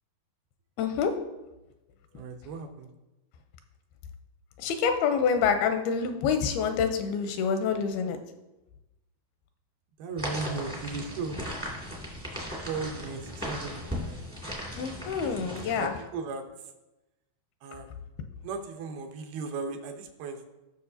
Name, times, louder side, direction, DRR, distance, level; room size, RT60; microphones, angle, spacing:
voice 1, 0.8-1.1 2.1-2.2 4.6-8.2 14.8-15.9, left 6 dB, 85° left, 7 dB, 2.5 m, -27 dB
voice 2, 2.1-2.9 10.0-11.4 12.7-14.2 15.1-16.4 17.6-17.9 18.4-20.5, right 4 dB, 80° right, 4 dB, 2.6 m, -37 dB
sound 1, 10.2-15.8, equal, 15° right, 0.5 m, -37 dB
15.5 x 6.1 x 2.7 m, 1.0 s
omnidirectional pair, 4.5 m